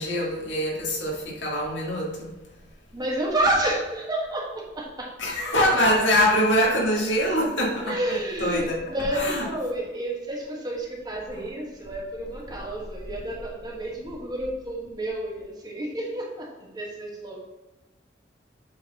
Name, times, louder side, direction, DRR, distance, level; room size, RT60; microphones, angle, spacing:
voice 1, 0.0-2.3 5.2-7.9 8.4-8.7 9.1-9.4 11.3-11.4, equal, 80° left, -2 dB, 1.9 m, -23 dB
voice 2, 2.9-5.1 7.9-17.4, right 1 dB, 20° right, -3 dB, 1.4 m, -30 dB
7.7 x 4.1 x 4.1 m, 1.1 s
head